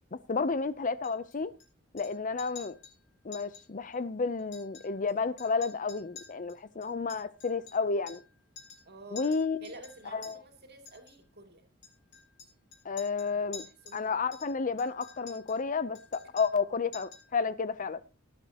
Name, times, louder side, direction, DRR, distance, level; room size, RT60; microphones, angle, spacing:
voice 1, 0.1-1.5 1.9-2.8 3.2-8.2 9.1-9.7 10.1-10.4 12.8-13.7 13.9-18.0, left 4 dB, 40° left, 0.6 m, -31 dB
Chink clink, 1.0-1.6 2.0-2.1 2.4-2.9 3.3-3.6 3.9-4.0 4.4-5.1 5.4-8.3 8.6-8.9 9.2-10.3 10.9-11.1 11.8-14.0 14.3-15.6 15.9-16.7 16.9-17.3, left 6 dB, 65° left, 6.5 m, -50 dB
voice 2, 8.8-9.3 9.6-11.6 13.2-14.2, right 3 dB, 55° right, 2.8 m, -50 dB
19.0 x 11.0 x 2.9 m
head